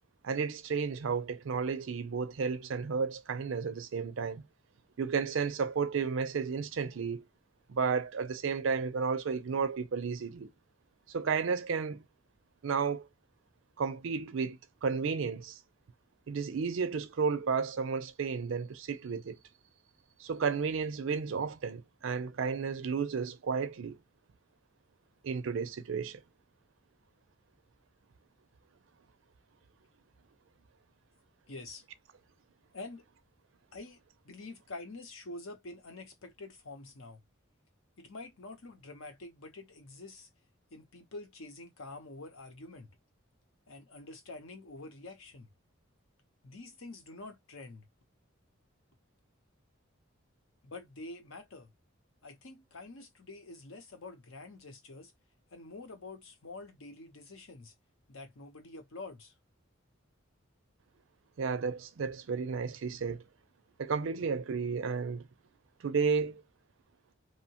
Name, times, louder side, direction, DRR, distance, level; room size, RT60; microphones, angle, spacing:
voice 1, 0.2-4.4 5.0-7.2 7.7-10.5 11.1-12.0 12.6-13.1 13.8-15.6 16.3-19.4 20.2-24.0 25.2-26.2 61.4-63.2 63.8-65.3 65.8-66.4, right 5 dB, 70° right, 0.4 m, -32 dB
voice 2, 31.5-31.8 32.7-33.0 33.7-34.0 34.2-37.2 38.0-40.3 40.7-42.9 43.7-45.5 46.4-47.9 50.6-51.7 52.2-55.1 55.5-57.7 58.1-59.3, left 2 dB, 75° left, 0.8 m, -47 dB
2.8 x 2.1 x 2.8 m
head